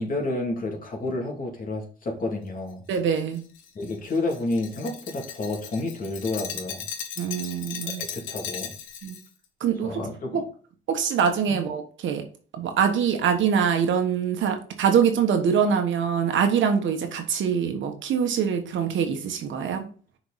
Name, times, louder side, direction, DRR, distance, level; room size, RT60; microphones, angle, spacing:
voice 1, 0.0-2.8 3.7-6.8 7.8-8.7 9.8-10.4, left 2 dB, 45° left, 0 dB, 2.7 m, -30 dB
Glass, 2.9-9.3, left 8 dB, 85° left, 1.1 m, -37 dB
voice 2, 2.9-3.4 7.2-8.0 9.0-9.2 9.6-10.0 10.3-10.4 10.9-12.2 12.5-19.9, right 7 dB, 75° right, 5 dB, 1.4 m, -24 dB
6.3 x 4.7 x 4.1 m, 0.41 s
cardioid pair, 90°, 20 cm